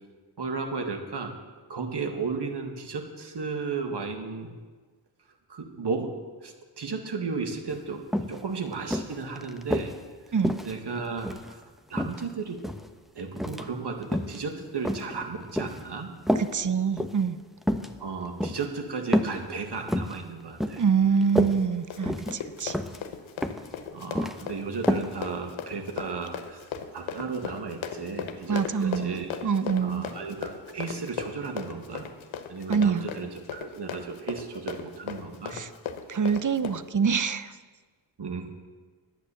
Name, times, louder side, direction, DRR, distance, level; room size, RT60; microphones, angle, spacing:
voice 1, 0.4-1.3 1.7-4.5 5.5-6.1 6.4-9.9 10.6-11.6 11.9-12.6 13.1-16.1 18.0-20.8 23.9-29.3 29.8-32.1 32.5-35.5 38.2-38.5, right 4 dB, 60° right, 4 dB, 1.9 m, -34 dB
sound 1, 7.7-7.8 8.1-8.4 8.9-10.0 10.4-11.5 12.0-12.9 13.4-13.7 14.0-14.4 14.8-15.8 16.3-16.5 16.9-17.2 17.6-17.9 18.4-18.6 19.1-19.4 19.7-20.2 20.6-20.9 21.2-21.6 22.1-22.4 22.7-23.0 23.4-23.7 24.0-24.4 24.9-25.1 25.4-25.5, equal, ahead, 1.0 m, -28 dB
voice 2, 16.4-17.4 20.8-22.8 28.5-30.1 32.7-33.1 35.5-35.7 36.1-37.5, right 6 dB, 40° right, 13 dB, 0.8 m, -25 dB
Run, 21.5-36.8, left 7 dB, 85° left, 1.0 m, -37 dB
10.0 x 9.1 x 7.1 m, 1.4 s
supercardioid pair, 40°, 47 cm